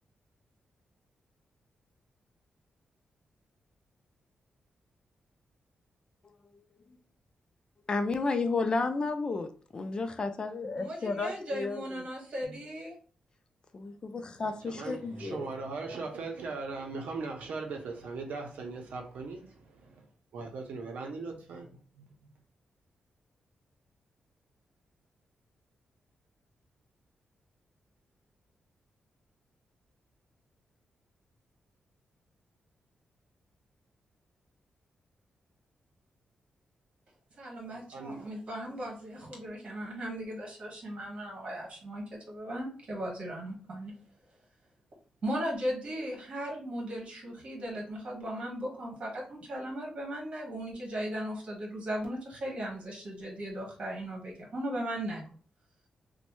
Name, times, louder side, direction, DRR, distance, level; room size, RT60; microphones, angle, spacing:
voice 1, 7.9-12.1 13.7-15.5, left 3 dB, 35° left, 0.4 m, -32 dB
voice 2, 10.8-12.9 37.4-43.9 45.2-55.2, equal, 50° right, 1.3 m, -37 dB
voice 3, 14.4-20.0 20.3-22.3 37.7-38.4, right 4 dB, 85° right, 0.6 m, -40 dB
3.0 x 2.1 x 3.0 m
cardioid pair, 110°, 3 cm